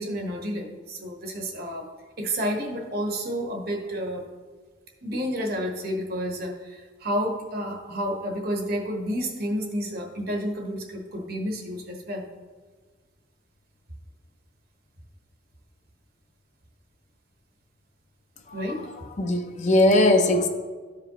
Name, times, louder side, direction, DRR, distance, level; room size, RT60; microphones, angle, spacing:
voice 1, 0.0-1.9 2.2-4.2 5.0-12.3 18.5-18.9, equal, 50° right, 2 dB, 1.1 m, -30 dB
voice 2, 18.5-18.8 19.2-20.5, left 1 dB, 35° left, 5 dB, 0.6 m, -20 dB
13.0 x 4.9 x 3.0 m, 1.4 s
head